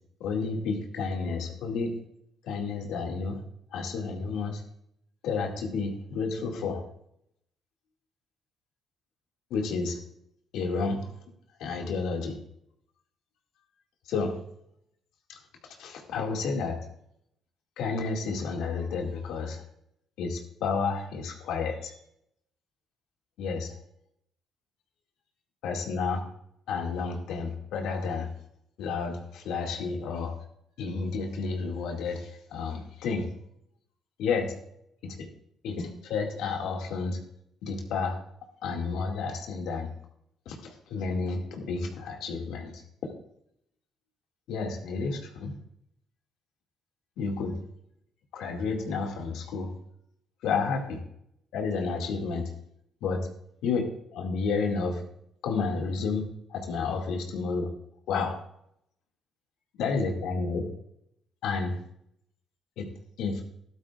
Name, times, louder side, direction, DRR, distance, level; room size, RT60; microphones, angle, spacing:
voice 1, 0.2-1.9 2.4-3.4 3.7-4.6 5.2-6.8 9.5-10.0 10.5-11.1 11.6-12.4 14.1-14.4 15.3-15.4 15.6-16.8 17.8-19.6 20.2-21.9 23.4-23.7 25.6-26.2 26.7-28.3 28.8-30.3 30.8-33.3 34.2-34.6 35.0-35.3 35.6-37.2 37.6-38.2 38.6-39.9 40.5-42.8 44.5-45.5 47.2-47.6 48.3-49.7 50.4-51.0 51.5-52.5 53.0-53.2 53.6-53.8 54.1-55.0 55.4-56.2 56.5-57.7 58.1-58.4 59.8-60.7 61.4-61.8 62.8-62.9 63.2-63.4, left 4 dB, 80° left, 2 dB, 2.1 m, -31 dB
14.0 x 12.0 x 2.4 m, 0.74 s
supercardioid pair, 65°, 0 cm